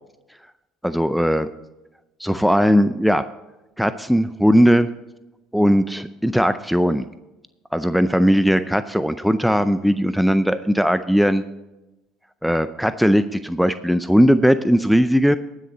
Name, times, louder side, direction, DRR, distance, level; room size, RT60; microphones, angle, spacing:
voice 1, 0.8-1.5 2.2-3.2 3.8-4.9 5.5-7.0 7.7-11.4 12.4-15.4, equal, ahead, 11 dB, 0.4 m, -18 dB
18.5 x 6.5 x 4.1 m, 1.0 s
supercardioid pair, 85°, 0 cm